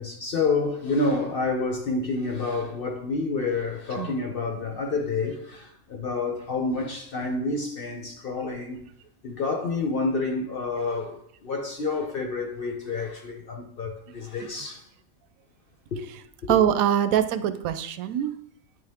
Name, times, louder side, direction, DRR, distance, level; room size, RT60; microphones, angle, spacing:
voice 1, 0.0-8.8 9.2-14.8 15.9-16.0 16.4-16.6, left 3 dB, 50° left, 0.8 m, -28 dB
voice 2, 16.5-18.3, right 10 dB, 85° right, 1.0 m, -23 dB
9.8 x 3.4 x 3.5 m
omnidirectional pair, 1.4 m